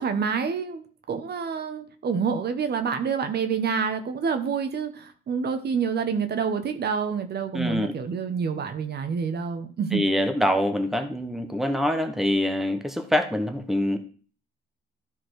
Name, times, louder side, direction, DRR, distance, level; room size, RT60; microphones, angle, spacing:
voice 1, 0.0-10.0, right 6 dB, 55° right, 8 dB, 1.1 m, -27 dB
voice 2, 7.5-7.9 9.9-14.0, left 1 dB, ahead, 7 dB, 1.0 m, -25 dB
13.0 x 4.3 x 4.7 m, 0.42 s
cardioid pair, 90°, 20 cm